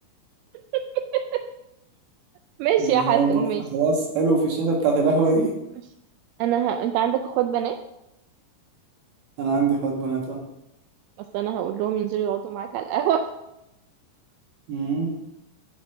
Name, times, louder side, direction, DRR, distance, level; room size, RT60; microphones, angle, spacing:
voice 1, 0.7-1.4 2.6-3.6 6.4-7.8 11.3-13.3, right 10 dB, 90° right, 7 dB, 2.2 m, -24 dB
voice 2, 2.8-3.4 3.7-5.5 9.4-10.4 14.7-15.1, right 4 dB, 65° right, -1 dB, 3.0 m, -22 dB
6.2 x 6.1 x 6.3 m, 0.84 s
omnidirectional pair, 5.0 m